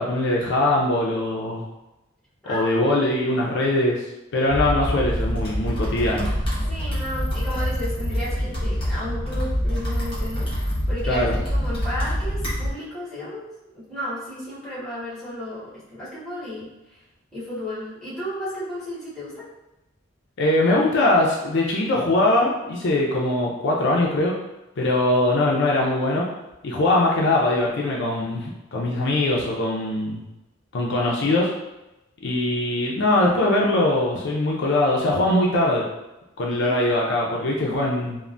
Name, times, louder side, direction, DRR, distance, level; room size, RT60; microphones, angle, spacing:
voice 1, 0.0-1.6 2.5-4.0 4.3-6.3 11.1-11.3 20.4-24.3 24.8-26.3 26.6-30.2 30.7-31.5 32.2-35.9 36.4-38.2, left 1 dB, 60° left, -2 dB, 0.4 m, -21 dB
sound 1, 4.5-12.7, equal, 25° left, 1.1 m, -26 dB
voice 2, 6.7-17.0 17.3-19.5 36.5-36.9 37.6-37.9, left 1 dB, ahead, -10 dB, 1.2 m, -34 dB
3.2 x 2.1 x 2.5 m, 0.94 s
head